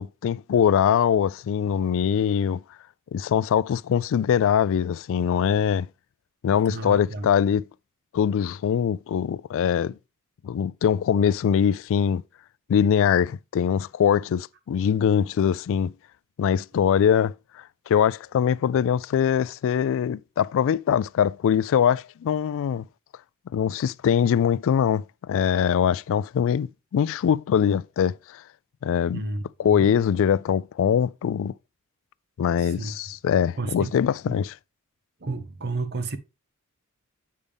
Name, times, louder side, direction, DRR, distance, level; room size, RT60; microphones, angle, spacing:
voice 1, 0.0-2.6 3.1-5.9 6.4-7.6 8.1-10.0 10.4-12.2 12.7-15.9 16.4-22.8 23.5-28.4 28.8-29.2 29.6-31.5 32.4-34.5, left 8 dB, 60° left, 0.3 m, -22 dB
voice 2, 6.7-7.3 22.7-22.9 29.1-29.9 32.6-33.0 33.6-33.9 34.2-34.4 35.2-36.2, right 3 dB, 50° right, 0.9 m, -32 dB
8.5 x 5.3 x 3.5 m
head